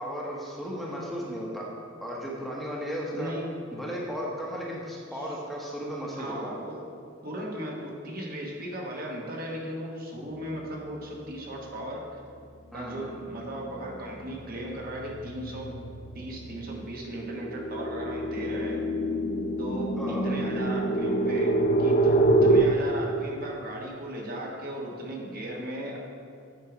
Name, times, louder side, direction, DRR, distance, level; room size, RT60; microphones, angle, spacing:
voice 1, 0.0-1.7 2.0-3.3 3.7-6.5 12.7-13.1 20.0-20.3, equal, ahead, -4 dB, 1.0 m, -35 dB
voice 2, 3.1-3.4 5.1-5.4 6.1-6.8 7.2-12.2 12.7-15.8 16.1-18.8 19.6-26.0, right 1 dB, 50° right, -1 dB, 1.2 m, -37 dB
sound 1, 13.2-13.3 13.7-22.6, right 2 dB, 45° left, 0.6 m, -26 dB
8.4 x 4.7 x 4.9 m, 2.3 s
head